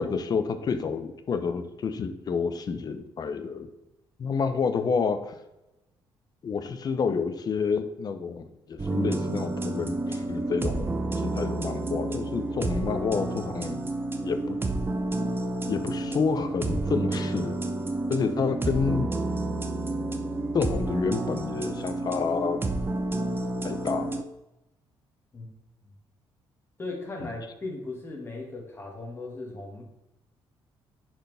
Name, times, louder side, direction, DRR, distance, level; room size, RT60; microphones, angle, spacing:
voice 1, 0.0-3.7 4.2-5.3 6.4-13.9 14.2-14.6 15.7-17.6 18.1-19.1 20.5-22.6 23.6-24.2 27.2-27.4, left 5 dB, 45° left, 9 dB, 0.7 m, -29 dB
sound 1, 8.8-24.2, right 2 dB, 20° right, 0.7 m, -30 dB
voice 2, 26.8-29.8, left 2 dB, 25° left, -1 dB, 2.1 m, -37 dB
10.0 x 4.3 x 3.4 m, 0.96 s
cardioid pair, 110°, 9 cm